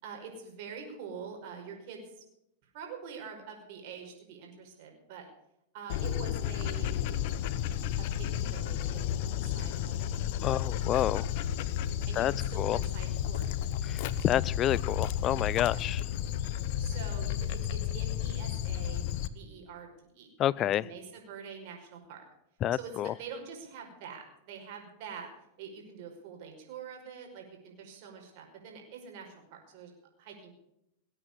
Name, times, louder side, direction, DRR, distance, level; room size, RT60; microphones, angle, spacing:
voice 1, 0.0-2.2 2.6-5.3 5.7-7.0 8.0-10.6 12.1-13.5 15.7-15.8 16.8-19.1 19.3-20.3 20.6-22.2 22.7-25.3 25.6-29.9 30.2-30.5, right 6 dB, 60° right, 2 dB, 5.3 m, -45 dB
Dog, 5.9-19.3, left 10 dB, 60° left, 1.0 m, -32 dB
voice 2, 10.4-11.3 12.2-12.3 12.6-12.8 13.9-16.0 20.4-20.8 22.6-23.1, left 12 dB, 35° left, 21 dB, 0.6 m, -28 dB
19.5 x 8.9 x 6.9 m, 0.79 s
hypercardioid pair, 105°, 0 cm